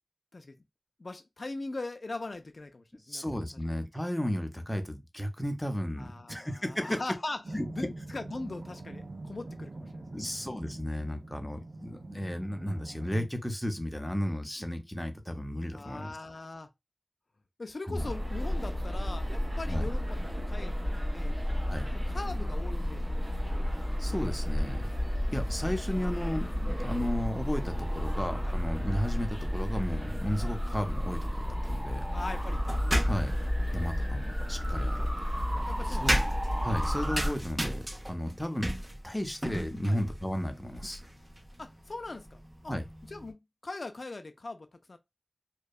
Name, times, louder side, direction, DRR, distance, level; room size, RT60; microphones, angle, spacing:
voice 1, 1.0-3.2 6.0-7.4 7.7-10.3 15.7-16.7 17.6-21.4 22.1-23.7 26.2-26.3 28.4-28.6 32.1-32.6 35.7-36.3 39.9-40.0 41.6-42.7 43.1-45.0, left 2 dB, 70° left, 0.3 m, -41 dB
voice 2, 3.1-7.0 7.5-7.7 10.1-16.2 17.9-18.1 19.7-19.9 21.7-21.9 23.7-24.9 25.3-32.0 33.1-33.4 33.7-35.1 35.9-36.2 36.6-38.7 39.0-41.0 42.7-42.8, equal, 10° left, 0.5 m, -34 dB
sound 1, 7.4-13.3, right 2 dB, 75° right, 0.4 m, -44 dB
sound 2, 17.9-37.3, equal, 50° right, 1.4 m, -31 dB
sound 3, 32.3-33.5 34.6-43.3, equal, 30° right, 0.6 m, -36 dB
2.7 x 2.2 x 2.3 m
wide cardioid pair, 55°, 0 cm